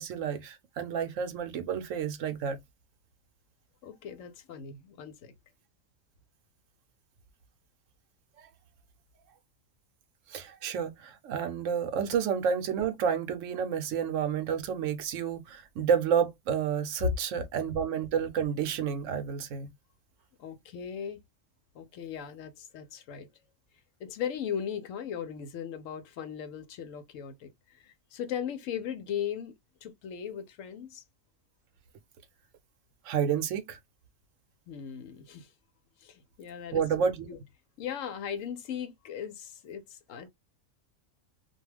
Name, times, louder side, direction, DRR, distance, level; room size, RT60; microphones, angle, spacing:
voice 1, 0.0-2.6 8.4-8.5 10.3-19.7 33.0-33.8 36.7-37.3, right 7 dB, 75° right, 0.9 m, -30 dB
voice 2, 3.8-5.3 20.4-21.2 21.7-23.3 24.0-29.5 29.8-31.0 34.7-35.5 36.0-37.4 37.8-40.3, left 8 dB, 75° left, 0.9 m, -38 dB
2.4 x 2.2 x 3.1 m
omnidirectional pair, 1.4 m